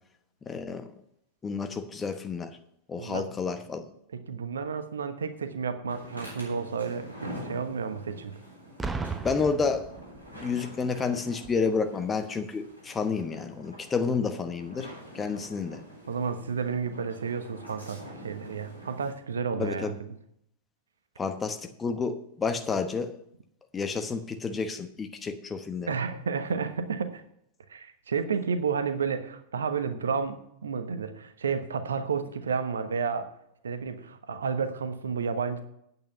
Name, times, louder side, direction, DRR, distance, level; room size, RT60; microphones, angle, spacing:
voice 1, 0.5-0.9 1.4-2.6 2.9-3.8 9.2-9.9 10.3-14.9 15.1-15.8 19.6-20.0 21.2-23.2 23.7-25.9, left 5 dB, 20° left, 8 dB, 1.0 m, -30 dB
voice 2, 4.1-8.3 16.1-19.9 25.9-27.2 27.7-33.3 33.6-35.6, right 5 dB, 70° right, 9 dB, 1.1 m, -31 dB
sound 1, 5.9-19.1, equal, 85° left, 3.6 m, -46 dB
Boom, 8.8-10.6 11.4-11.7, right 4 dB, 10° right, 0.8 m, -35 dB
9.1 x 8.6 x 5.6 m, 0.73 s
figure-of-eight pair, 90°, 0 cm